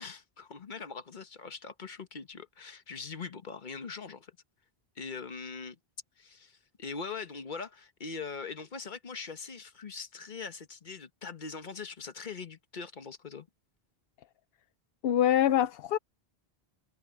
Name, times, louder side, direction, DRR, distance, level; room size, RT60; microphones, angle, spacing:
voice 1, 0.0-4.4 5.0-5.8 6.2-13.5, left 5 dB, 50° left, 1.3 m, -42 dB
voice 2, 15.0-16.0, left 10 dB, 70° left, 0.8 m, -24 dB
omnidirectional pair, 1.0 m